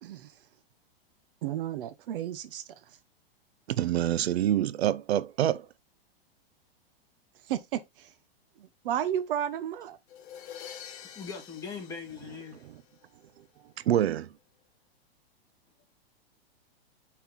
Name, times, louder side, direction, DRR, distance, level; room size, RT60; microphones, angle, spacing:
voice 1, 0.0-0.3 1.4-2.6 7.5-8.1 8.6-10.0, right 10 dB, 60° right, 0.9 m, -33 dB
voice 2, 3.7-5.7 13.9-14.3, right 12 dB, 85° right, 0.5 m, -26 dB
sound 1, 10.1-13.0, left 9 dB, 55° left, 1.7 m, -47 dB
voice 3, 10.9-12.7, left 5 dB, 10° left, 2.8 m, -41 dB
5.4 x 4.6 x 4.2 m
hypercardioid pair, 130°, 31 cm